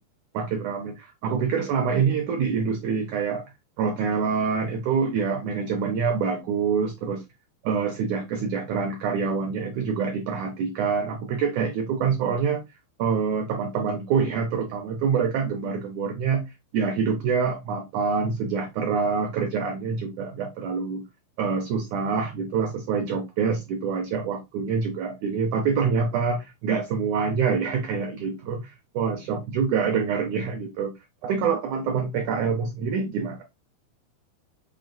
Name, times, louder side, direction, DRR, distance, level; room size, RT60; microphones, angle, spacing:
voice 1, 0.3-3.4 3.8-7.2 7.6-12.6 13.0-16.4 16.7-21.0 21.4-30.9 31.2-33.4, right 5 dB, 80° right, 1.7 m, -26 dB
6.0 x 3.8 x 2.2 m
omnidirectional pair, 4.2 m